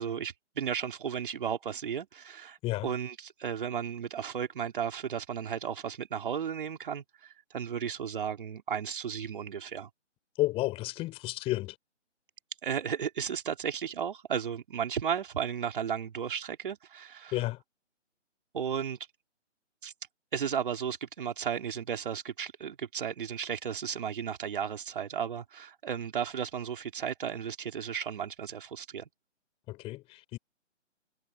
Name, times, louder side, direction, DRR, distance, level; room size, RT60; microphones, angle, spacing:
voice 1, 0.0-2.6 2.8-9.9 12.6-17.4 18.5-19.0 19.8-19.9 20.3-29.1, right 8 dB, 45° right, 3.5 m, -34 dB
voice 2, 10.4-11.7 17.3-17.6 29.7-30.4, left 18 dB, 15° left, 5.3 m, -31 dB
figure-of-eight pair, 145°, 36 cm